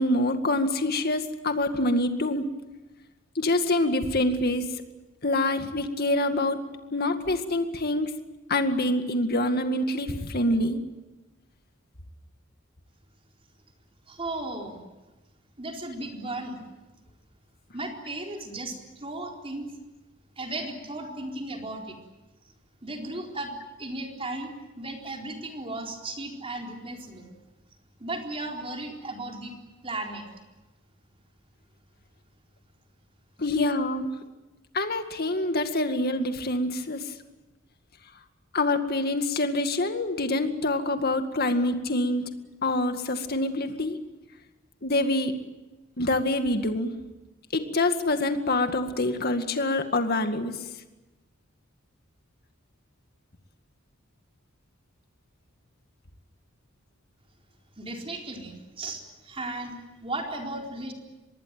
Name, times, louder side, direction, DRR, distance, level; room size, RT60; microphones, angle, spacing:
voice 1, 0.0-2.5 3.4-4.6 5.2-6.6 6.9-8.1 8.5-10.8 33.4-34.1 34.7-37.0 38.5-42.2 42.6-44.0 44.8-45.3 46.0-46.9 47.5-50.5, left 2 dB, 50° left, 7 dB, 2.1 m, -26 dB
voice 2, 14.1-14.8 15.6-16.7 17.7-19.7 20.4-22.0 22.8-27.3 28.0-29.5 29.8-30.2 57.8-60.9, right 2 dB, 30° right, 1 dB, 4.2 m, -35 dB
25.0 x 21.0 x 9.1 m, 1.1 s
head